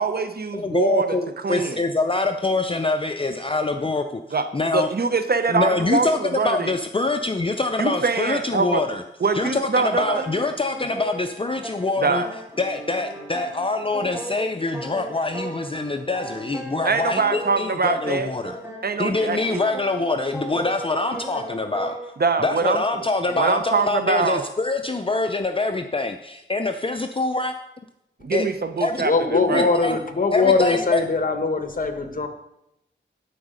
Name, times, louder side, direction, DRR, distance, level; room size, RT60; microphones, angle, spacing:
voice 1, 0.0-1.8 4.3-6.7 7.8-8.9 9.2-10.2 12.0-12.3 16.8-18.3 18.8-19.6 22.2-22.8 23.3-24.5 28.2-29.7, right 4 dB, 55° right, 10 dB, 0.7 m, -23 dB
voice 2, 0.5-4.2 4.5-4.9 5.5-6.2 6.4-9.0 9.3-12.2 12.6-18.6 19.0-22.1 22.4-27.5 28.3-28.5 28.8-29.0 29.5-30.0 30.3-31.0, left 3 dB, 25° left, 6 dB, 0.5 m, -25 dB
sound 1, 9.3-22.1, right 1 dB, 15° right, 3.2 m, -37 dB
voice 3, 29.0-32.3, left 4 dB, 45° left, 6 dB, 1.2 m, -21 dB
12.0 x 4.7 x 5.1 m, 0.86 s
wide cardioid pair, 70°, 20 cm